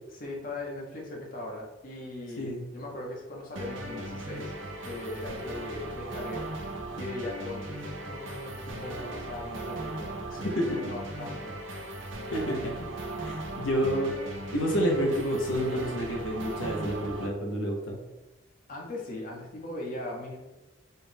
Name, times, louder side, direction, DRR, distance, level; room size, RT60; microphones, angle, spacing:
voice 1, 0.1-4.5 4.8-11.5 18.7-20.4, left 1 dB, 45° left, -2 dB, 0.9 m, -39 dB
sound 1, 3.6-17.3, right 1 dB, 75° right, 0.6 m, -38 dB
voice 2, 12.3-12.7 13.2-14.1 14.5-18.0, equal, 80° left, 0 dB, 0.8 m, -29 dB
4.5 x 2.3 x 3.3 m, 1.0 s
head